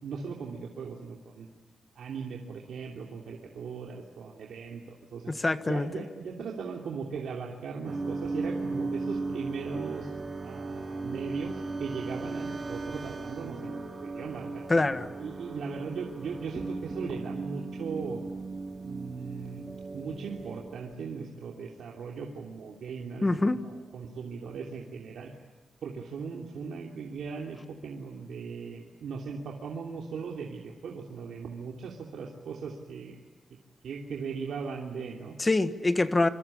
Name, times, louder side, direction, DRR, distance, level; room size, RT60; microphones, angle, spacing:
voice 1, 0.0-1.5 1.9-5.3 5.7-10.1 10.4-14.6 15.2-18.2 18.8-19.6 19.9-25.3 25.8-33.2 33.8-35.4, right 5 dB, 85° right, 0 dB, 3.1 m, -38 dB
voice 2, 5.3-6.0 14.7-15.1 23.2-23.6 35.4-36.3, left 2 dB, 20° left, 10 dB, 1.5 m, -25 dB
sound 1, 7.9-21.0, right 3 dB, 25° right, 3.4 m, -37 dB
27.5 x 25.5 x 8.6 m, 1.3 s
wide cardioid pair, 150°, 0 cm